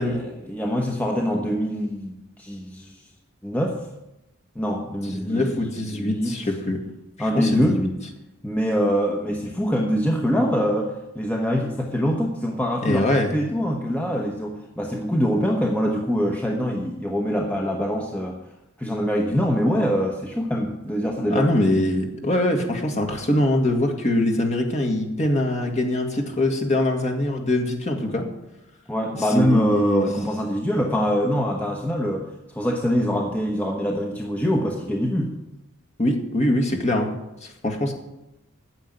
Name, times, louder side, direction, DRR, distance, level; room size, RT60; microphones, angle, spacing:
voice 1, 0.0-2.9 3.4-3.8 4.5-6.3 7.2-7.8 8.4-18.4 18.8-21.5 28.9-35.3, equal, 5° left, 0 dB, 1.0 m, -24 dB
voice 2, 5.1-6.8 7.2-7.9 12.8-13.3 21.3-28.2 29.4-30.1 36.0-37.2 37.4-37.9, left 1 dB, 35° left, 2 dB, 1.8 m, -23 dB
9.4 x 7.2 x 9.2 m, 0.92 s
head